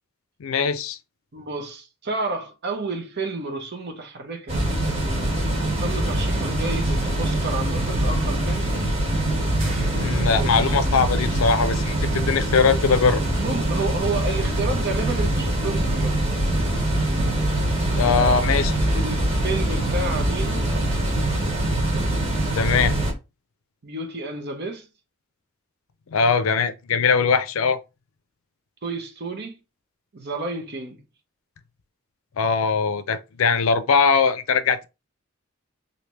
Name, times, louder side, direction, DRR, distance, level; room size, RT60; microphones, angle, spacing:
voice 1, 0.4-1.0 9.9-13.2 17.5-17.7 18.0-18.7 22.5-23.0 26.1-27.8 32.4-34.9, left 5 dB, 75° left, 0.5 m, -21 dB
voice 2, 1.3-4.6 5.8-8.7 10.3-10.7 13.4-16.2 18.0-18.4 18.9-20.7 23.8-24.9 28.8-29.6 30.1-31.0, right 3 dB, 50° right, 0.8 m, -30 dB
sound 1, 4.5-23.1, right 1 dB, 30° right, 1.2 m, -23 dB
sound 2, 9.6-10.7, right 3 dB, 80° right, 1.4 m, -41 dB
sound 3, 16.6-23.2, equal, 10° right, 0.5 m, -31 dB
3.2 x 2.7 x 3.0 m
head